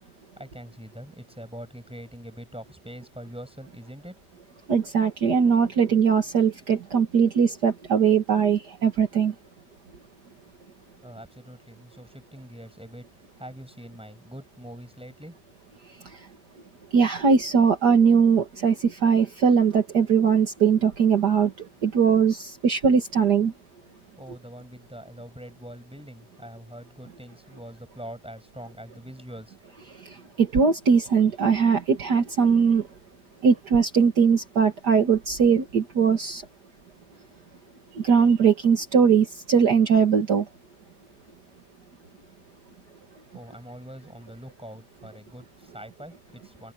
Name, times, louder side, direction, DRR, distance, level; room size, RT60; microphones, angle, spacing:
voice 1, 0.0-4.2 11.0-13.1 13.4-15.4 15.7-15.8 24.2-29.9 43.3-46.7, equal, 5° right, 7.9 m, -43 dB
voice 2, 4.7-9.3 16.9-23.5 30.1-32.8 33.4-36.4 38.0-40.5, right 6 dB, 55° right, 2.3 m, -20 dB
omnidirectional pair, 2.2 m